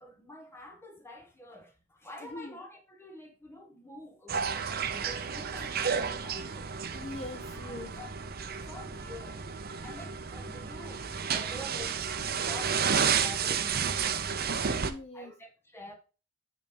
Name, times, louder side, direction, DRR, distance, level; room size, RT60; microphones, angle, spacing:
voice 1, 0.0-6.7 7.5-8.1 8.4-9.4 9.8-12.1 12.4-14.7 15.1-15.9, left 1 dB, 10° left, 1.4 m, -48 dB
voice 2, 2.2-2.6 6.9-7.9 14.6-15.3, left 2 dB, 30° left, 0.6 m, -42 dB
sound 1, 4.3-14.9, right 6 dB, 45° right, 0.7 m, -31 dB
9.7 x 3.5 x 5.1 m
head